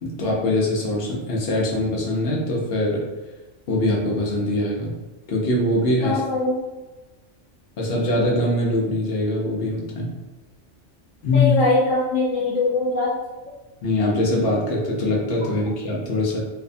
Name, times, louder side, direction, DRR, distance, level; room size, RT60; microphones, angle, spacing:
voice 1, 0.0-3.0 3.7-4.9 5.3-6.2 7.8-10.1 11.2-11.5 13.8-16.4, left 1 dB, 60° left, -3 dB, 0.7 m, -22 dB
voice 2, 6.0-6.5 11.3-13.1, left 3 dB, 80° left, -5 dB, 1.0 m, -21 dB
2.7 x 2.1 x 2.5 m, 1.1 s
omnidirectional pair, 1.3 m